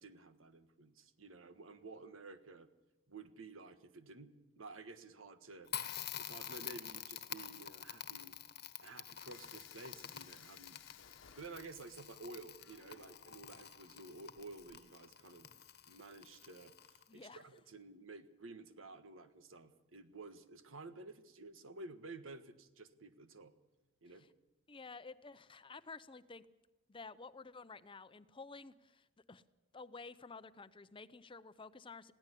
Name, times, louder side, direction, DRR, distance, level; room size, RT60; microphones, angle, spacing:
voice 1, 0.0-2.7 3.1-5.7 6.2-8.4 8.8-10.8 11.4-15.5 15.9-23.5 24.0-24.3, right 3 dB, 85° right, 10 dB, 1.5 m, -52 dB
Crackle, 5.7-17.3, left 10 dB, 50° left, 1.3 m, -48 dB
sound 1, 9.3-14.8, left 7 dB, 75° left, 1.2 m, -62 dB
voice 2, 17.1-17.4 24.2-24.3 24.7-26.5 26.9-29.4 29.7-32.1, left 4 dB, 25° left, 14 dB, 0.7 m, -52 dB
21.0 x 16.5 x 8.4 m, 1.0 s
head